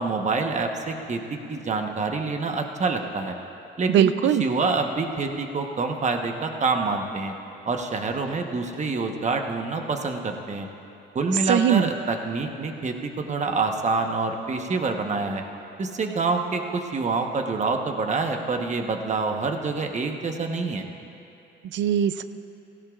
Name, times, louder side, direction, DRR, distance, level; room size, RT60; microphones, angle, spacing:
voice 1, 0.0-3.3 3.8-4.1 4.4-7.3 7.7-10.7 11.1-15.4 15.8-20.8, right 4 dB, 35° right, 4 dB, 1.1 m, -26 dB
voice 2, 3.9-4.4 11.5-11.9 21.7-22.2, right 9 dB, 70° right, 12 dB, 0.5 m, -20 dB
17.0 x 16.0 x 2.4 m, 2.8 s
cardioid pair, 90°, 20 cm